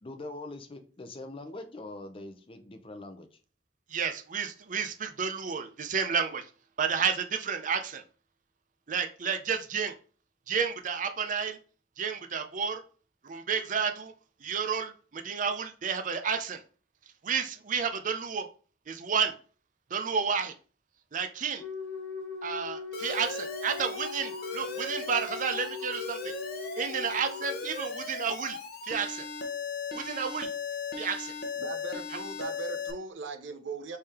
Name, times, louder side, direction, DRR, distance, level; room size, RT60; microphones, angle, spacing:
voice 1, 0.0-3.4, left 2 dB, 30° left, 0.6 m, -43 dB
voice 2, 3.9-6.5 6.8-8.0 8.9-9.9 10.5-11.6 12.0-12.8 13.2-14.1 14.4-16.6 17.2-18.5 18.9-19.3 19.9-20.5 21.1-21.6 22.4-26.3 26.8-28.6 28.8-29.3 29.9-30.5 31.0-31.3, right 6 dB, 45° right, 0.5 m, -31 dB
Wind instrument woodwind instrument, 21.6-27.6, left 5 dB, 10° left, 1.3 m, -40 dB
Alarm, 22.9-32.9, left 4 dB, 55° left, 0.8 m, -38 dB
voice 3, 31.6-34.0, right 4 dB, 90° right, 0.8 m, -39 dB
3.7 x 3.4 x 4.2 m
head